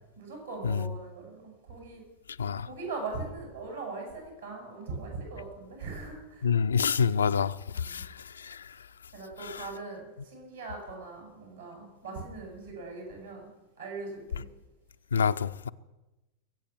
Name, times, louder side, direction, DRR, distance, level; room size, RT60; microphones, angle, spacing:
voice 1, 0.2-2.0 2.6-6.5 6.8-6.9 7.8-8.0 9.1-13.5 13.8-14.5, right 3 dB, 70° right, 7.8 m, -40 dB
voice 2, 6.4-8.1 8.4-8.6 9.4-9.7 15.1-15.7, left 6 dB, 70° left, 0.4 m, -27 dB
22.5 x 8.8 x 7.4 m
figure-of-eight pair, 90°, 0 cm